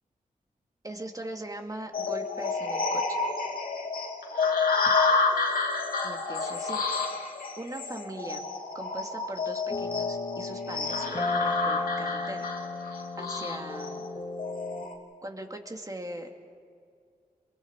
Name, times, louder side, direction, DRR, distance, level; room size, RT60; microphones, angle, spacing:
voice 1, 0.8-3.2 4.8-4.9 6.0-6.8 7.6-8.5 8.7-12.5 12.8-14.1 15.2-16.3, right 1 dB, 25° right, 3 dB, 2.4 m, -40 dB
sound 1, 1.9-14.9, left 4 dB, 90° left, 2.5 m, -29 dB
sound 2, 9.7-14.8, left 3 dB, 30° left, 2.0 m, -34 dB
29.0 x 22.5 x 4.8 m, 2.3 s
cardioid pair, 55°, 15 cm